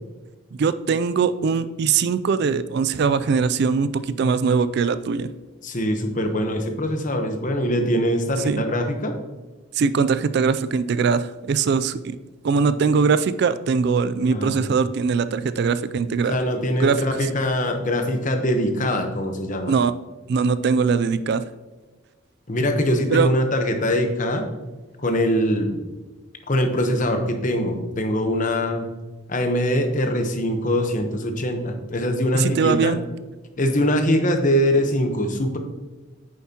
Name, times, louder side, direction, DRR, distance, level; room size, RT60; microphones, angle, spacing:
voice 1, 0.6-5.3 8.4-8.6 9.7-12.2 12.4-16.3 16.8-17.0 19.7-19.9 20.3-21.4 23.1-23.3 32.3-33.0, right 5 dB, 50° right, 14 dB, 0.3 m, -21 dB
voice 2, 5.6-9.2 14.3-14.7 16.3-19.7 22.5-24.4 25.0-25.8 26.5-28.9 29.3-32.9 33.6-35.6, equal, 35° left, 5 dB, 1.0 m, -22 dB
9.1 x 7.1 x 2.9 m, 1.2 s
head